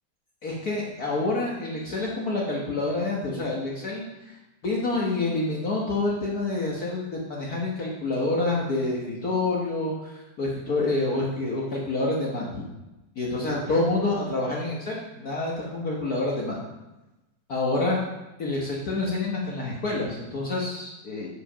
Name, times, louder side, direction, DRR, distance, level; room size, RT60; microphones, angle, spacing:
voice 1, 0.4-4.3 4.6-12.7 13.2-16.6 17.5-18.0 18.4-21.3, left 2 dB, 70° left, -4 dB, 0.8 m, -27 dB
9.1 x 5.1 x 5.0 m, 1.0 s
omnidirectional pair, 3.4 m